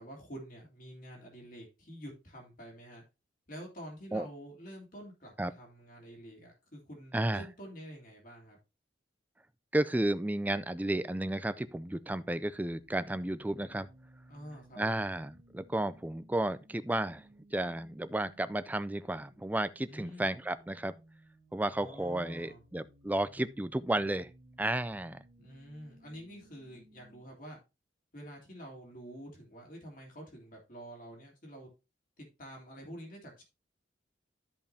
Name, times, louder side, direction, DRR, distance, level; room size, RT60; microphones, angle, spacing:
voice 1, 0.0-3.0 3.5-8.6 14.3-15.0 19.9-20.3 21.7-22.6 25.4-27.6 28.1-31.7 32.2-33.4, equal, 50° left, 3.2 m, -48 dB
voice 2, 7.1-7.5 9.7-13.9 14.8-20.9 21.5-24.3 24.6-25.2, right 1 dB, 10° right, 0.4 m, -33 dB
sound 1, 11.1-27.2, right 1 dB, 60° right, 1.6 m, -61 dB
12.5 x 5.2 x 2.8 m
head